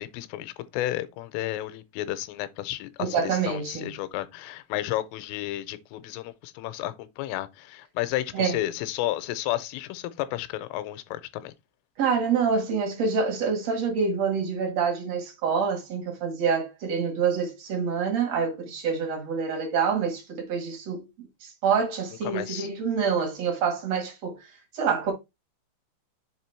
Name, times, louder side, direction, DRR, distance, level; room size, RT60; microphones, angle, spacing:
voice 1, 0.0-11.5 22.2-22.7, left 14 dB, 85° left, 3.1 m, -32 dB
voice 2, 3.0-3.9 8.3-8.5 12.0-21.1 21.6-24.4 24.7-25.1, right 6 dB, 85° right, 1.4 m, -26 dB
7.3 x 3.3 x 4.5 m
omnidirectional pair, 5.9 m